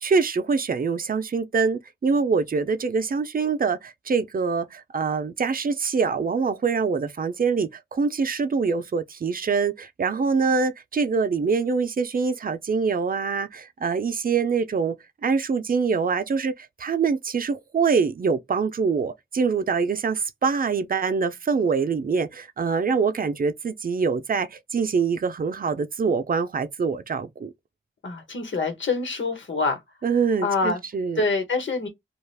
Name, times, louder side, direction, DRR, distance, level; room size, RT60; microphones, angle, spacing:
voice 1, 0.0-14.9 15.2-27.5 30.0-31.2, right 5 dB, 45° right, 0.4 m, -24 dB
voice 2, 28.0-29.8 30.4-30.8 31.2-31.9, left 3 dB, 65° left, 1.1 m, -25 dB
2.4 x 2.3 x 3.2 m
wide cardioid pair, 90°, 21 cm